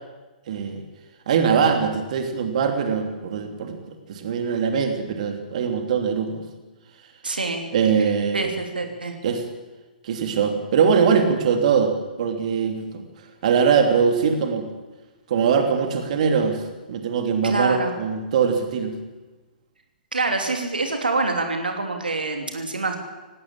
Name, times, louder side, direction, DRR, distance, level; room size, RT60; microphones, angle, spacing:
voice 1, 0.5-0.8 1.3-3.8 4.1-6.4 7.7-8.4 9.2-9.4 10.0-13.0 13.4-14.7 15.3-16.6 16.9-18.9, right 6 dB, 50° right, 5 dB, 3.1 m, -22 dB
voice 2, 7.2-7.6 8.3-9.2 17.4-17.9 20.1-23.0, right 3 dB, 75° right, 5 dB, 3.0 m, -26 dB
18.5 x 18.0 x 8.8 m, 1.2 s
figure-of-eight pair, 115°, 5 cm